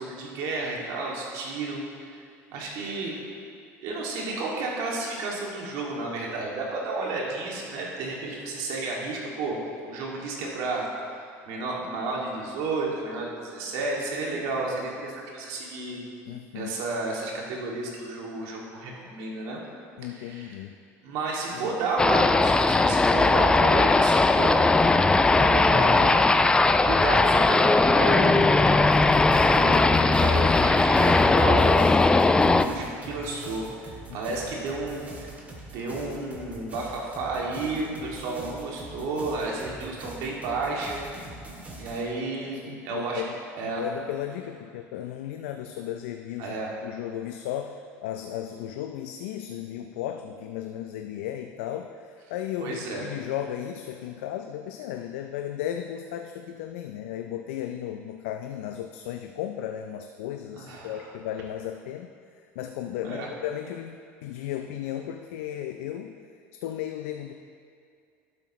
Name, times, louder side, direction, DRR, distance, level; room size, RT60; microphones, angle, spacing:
voice 1, 0.0-1.8 2.5-3.2 3.8-9.6 9.9-11.2 11.4-16.0 16.5-19.6 20.1-20.6 21.0-26.2 26.8-28.5 29.5-31.8 32.3-33.7 34.1-35.3 35.7-41.0 41.8-43.2 43.5-43.8 46.4-46.7 52.6-53.0 60.5-61.1 63.0-63.3, right 3 dB, 70° right, -3 dB, 2.3 m, -32 dB
voice 2, 16.3-16.7 20.0-20.7 21.5-21.7 34.1-34.2 42.7-43.3 43.6-46.5 46.8-52.0 52.3-62.1 62.6-66.2 66.6-67.3, left 11 dB, 85° left, 5 dB, 0.4 m, -35 dB
sound 1, 22.0-32.6, left 3 dB, 10° left, 0.4 m, -19 dB
sound 2, 28.9-42.0, right 1 dB, 20° right, 2.5 m, -43 dB
11.5 x 8.9 x 3.1 m, 2.3 s
supercardioid pair, 95°, 7 cm